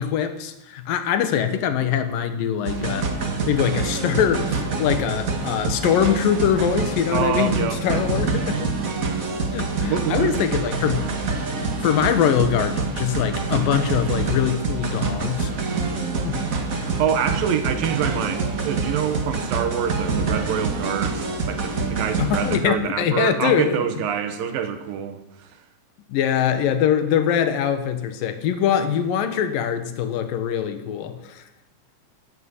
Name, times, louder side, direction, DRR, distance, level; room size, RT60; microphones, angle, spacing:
voice 1, 0.0-3.1 3.5-8.7 9.5-11.0 11.6-15.5 16.2-16.4 22.2-23.8 26.1-31.4, left 8 dB, 80° left, 9 dB, 2.8 m, -23 dB
sound 1, 2.7-22.6, right 4 dB, 50° right, 1.0 m, -26 dB
voice 2, 7.1-8.1 9.8-10.5 16.8-25.6, right 8 dB, 85° right, 9 dB, 3.0 m, -26 dB
14.0 x 7.9 x 9.6 m, 0.94 s
omnidirectional pair, 4.0 m